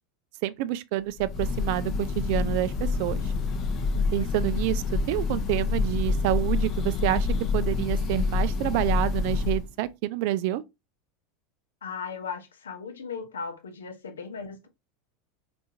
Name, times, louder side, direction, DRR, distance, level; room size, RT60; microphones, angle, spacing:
voice 1, 0.4-3.3 4.1-7.3 7.5-10.6, right 14 dB, 60° right, 0.3 m, -28 dB
Breathing / Bird, 1.2-9.7, left 4 dB, 40° left, 0.6 m, -27 dB
voice 2, 3.9-4.3 11.8-14.7, left 5 dB, 80° left, 0.6 m, -37 dB
3.5 x 2.5 x 2.7 m
hypercardioid pair, 85°, 0 cm